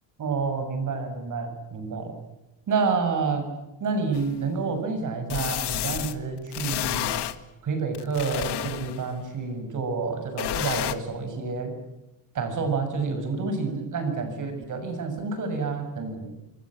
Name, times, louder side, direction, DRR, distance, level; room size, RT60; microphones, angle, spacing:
voice 1, 0.2-2.1 2.7-3.5 3.8-7.1 7.6-11.7 12.3-16.3, right 4 dB, 40° right, 8 dB, 7.1 m, -29 dB
sound 1, 4.1-4.2 5.3-6.1 6.5-7.3 7.9-9.1 10.4-10.9, left 12 dB, 55° left, 1.8 m, -30 dB
27.5 x 23.5 x 9.0 m, 0.98 s
cardioid pair, 170°, 48 cm